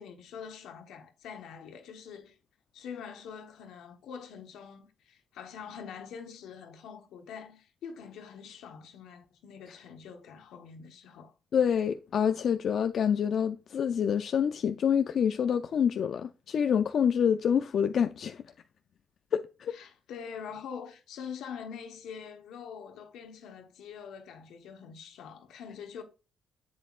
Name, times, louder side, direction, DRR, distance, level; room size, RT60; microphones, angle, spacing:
voice 1, 0.0-2.3 2.7-11.3 19.7-26.0, left 7 dB, 85° left, 1.1 m, -44 dB
voice 2, 11.5-18.4 19.3-19.8, left 8 dB, 60° left, 0.4 m, -27 dB
7.9 x 7.3 x 2.4 m
cardioid pair, 90°, 0 cm